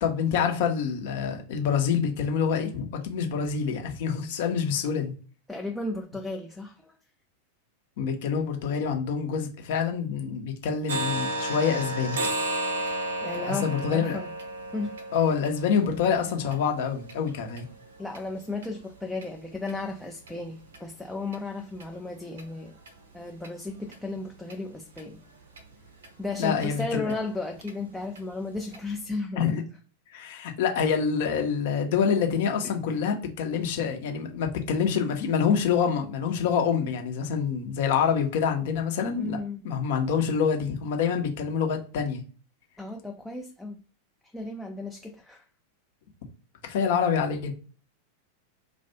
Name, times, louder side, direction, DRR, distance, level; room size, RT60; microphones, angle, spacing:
voice 1, 0.0-5.1 8.0-12.2 13.4-14.2 15.1-17.6 26.4-27.1 29.4-29.6 30.1-39.4 39.6-42.2 46.6-47.5, left 6 dB, 50° left, 0.6 m, -26 dB
voice 2, 5.5-7.0 13.2-14.3 14.7-15.0 18.0-22.8 23.1-25.2 26.2-29.5 32.6-33.0 39.2-39.6 42.8-43.8 44.3-45.4, left 3 dB, 5° left, 0.3 m, -34 dB
sound 1, 10.9-18.7 19.1-19.3 19.7-19.8 20.3-20.4 20.7-20.8 21.3-21.4 21.8-21.9 22.4-22.5 22.9-23.0 23.4-23.5 23.9-24.0 24.5-24.6 25.0-25.1 25.6-25.7 26.0-26.1 26.6-26.7 27.1-27.2 27.6-27.7 28.2-28.3 28.7-28.8, right 1 dB, 65° right, 0.6 m, -33 dB
2.4 x 2.1 x 2.8 m
figure-of-eight pair, 90°, 0 cm